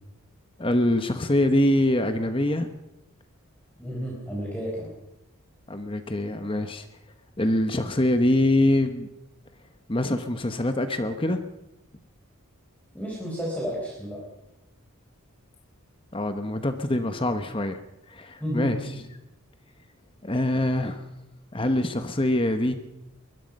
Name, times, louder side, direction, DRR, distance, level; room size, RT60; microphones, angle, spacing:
voice 1, 0.6-2.7 5.7-6.8 7.4-9.1 9.9-11.4 16.1-17.8 18.1-18.8 20.2-21.0 21.5-22.7, left 1 dB, 25° left, 8 dB, 1.1 m, -24 dB
voice 2, 3.8-4.9 12.9-14.2 18.4-19.0, equal, 5° left, -4 dB, 4.7 m, -31 dB
23.5 x 21.0 x 5.4 m, 0.92 s
head